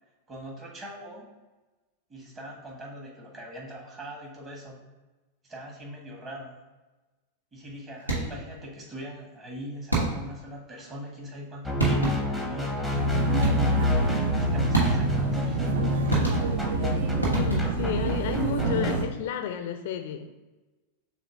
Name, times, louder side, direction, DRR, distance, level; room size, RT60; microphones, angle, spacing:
voice 1, 0.3-1.3 2.1-4.8 5.4-6.6 7.5-13.0 14.0-15.6, equal, 25° right, -2 dB, 1.3 m, -41 dB
sound 1, 8.0-8.5 9.9-10.4 11.4-11.5 11.8-12.4 13.4-13.9 14.7-15.3 16.1-16.8 17.2-17.9, right 2 dB, 85° right, 1.2 m, -28 dB
sound 2, 11.6-19.1, left 2 dB, 5° right, 0.7 m, -28 dB
sound 3, 12.9-19.1, right 6 dB, 55° right, 0.4 m, -29 dB
voice 2, 13.5-13.9 17.3-20.3, left 8 dB, 55° left, 7 dB, 0.4 m, -32 dB
6.8 x 2.3 x 3.4 m, 1.2 s
figure-of-eight pair, 90°, 0 cm